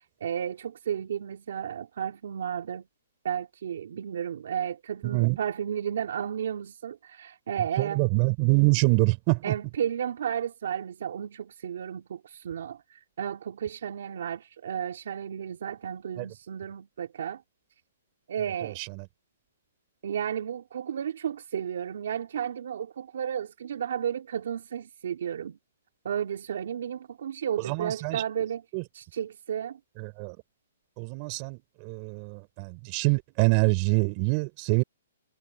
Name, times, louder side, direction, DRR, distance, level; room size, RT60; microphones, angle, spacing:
voice 1, 0.2-2.9 3.2-8.1 9.4-17.4 18.3-18.8 20.0-25.6 26.0-28.6 28.9-29.8, right 9 dB, 65° right, 2.8 m, -33 dB
voice 2, 5.0-5.4 7.8-9.5 16.2-16.3 18.6-19.0 27.7-28.2 28.7-28.8 30.0-30.4 31.0-34.8, right 31 dB, 35° right, 5.8 m, -25 dB
hypercardioid pair, 150°, 0 cm